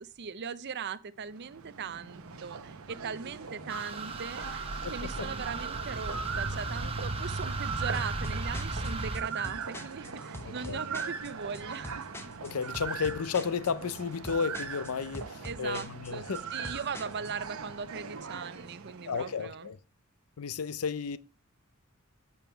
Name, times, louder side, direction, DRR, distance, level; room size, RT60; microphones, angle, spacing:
voice 1, 0.0-4.6 4.9-11.9 15.4-19.7, right 6 dB, 50° right, 0.6 m, -39 dB
sound 1, 1.2-19.6, right 5 dB, 70° right, 1.0 m, -41 dB
sound 2, 3.7-9.2, right 2 dB, 25° right, 1.2 m, -35 dB
voice 2, 4.8-5.3 10.4-10.8 12.4-16.5 19.0-19.8 20.4-21.2, left 6 dB, 75° left, 0.5 m, -33 dB
sound 3, 7.9-17.5, left 1 dB, 10° left, 0.9 m, -45 dB
7.5 x 7.2 x 4.5 m
head